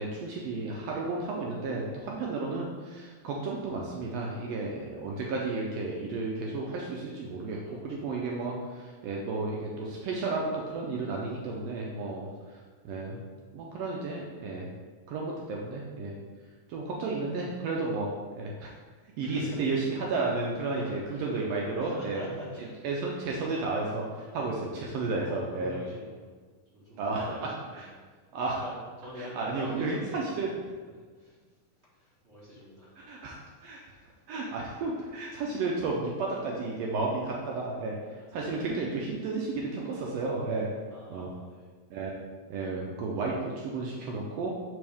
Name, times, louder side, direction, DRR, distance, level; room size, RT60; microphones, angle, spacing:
voice 1, 0.0-7.6 7.8-12.3 12.8-13.2 13.5-14.7 15.1-16.1 16.7-18.1 18.4-18.7 19.2-22.2 22.8-25.7 27.0-27.3 27.7-27.9 28.3-28.6 29.2-30.5 33.0-33.4 33.6-33.8 34.3-37.9 38.3-40.7 41.1-41.3 41.9-42.1 42.5-44.5, right 3 dB, 85° right, -2 dB, 1.4 m, -32 dB
voice 2, 7.3-8.2 11.9-12.5 19.2-19.6 20.7-22.8 23.2-23.7 24.2-24.6 25.2-26.3 26.7-27.9 28.6-30.4 30.9-31.4 31.9-33.0 33.4-33.5 34.1-34.2 35.4-35.5 38.1-38.2 40.9-41.7, equal, 40° right, -8 dB, 0.9 m, -45 dB
8.6 x 3.4 x 3.5 m, 1.5 s
omnidirectional pair, 3.6 m